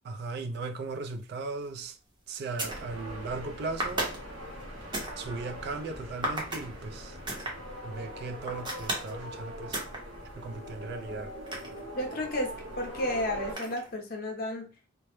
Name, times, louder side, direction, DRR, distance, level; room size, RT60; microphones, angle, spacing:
voice 1, 0.0-2.0 2.3-4.1 5.2-7.2 7.8-9.8 10.4-11.3, right 3 dB, 55° right, 0.3 m, -37 dB
sound 1, 1.6-1.8 2.4-2.9 3.8-5.2 6.2-6.7 7.3-7.5 8.4-9.1 9.7-10.0 10.4-12.2 13.5-14.0, right 1 dB, 25° right, 0.7 m, -34 dB
sound 2, 2.7-13.5, equal, 80° right, 0.8 m, -42 dB
voice 2, 12.0-14.7, left 1 dB, 50° left, 0.6 m, -32 dB
2.1 x 2.0 x 2.9 m
head